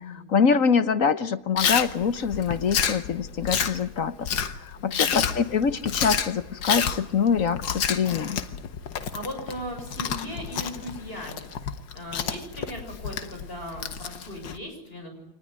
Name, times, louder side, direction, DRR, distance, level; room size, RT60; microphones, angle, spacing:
voice 1, 0.0-4.3 4.6-8.4, left 6 dB, 50° left, 12 dB, 1.3 m, -24 dB
Chewing mastication, 1.6-14.6, left 7 dB, 65° left, 1.9 m, -30 dB
voice 2, 4.8-5.3 9.1-11.5 11.9-15.1, equal, 25° left, 4 dB, 7.7 m, -38 dB
26.0 x 20.0 x 9.5 m, 0.88 s
omnidirectional pair, 2.1 m